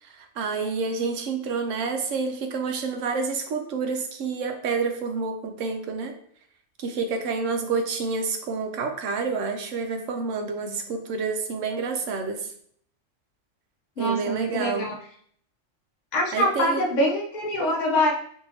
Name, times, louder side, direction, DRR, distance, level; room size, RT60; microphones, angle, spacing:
voice 1, 0.0-6.2 6.8-12.5 14.0-14.9 16.3-16.9, right 4 dB, 70° right, 5 dB, 1.0 m, -28 dB
voice 2, 14.0-15.0 16.1-18.1, equal, 40° left, -2 dB, 0.7 m, -24 dB
5.5 x 2.7 x 2.8 m, 0.63 s
omnidirectional pair, 1.4 m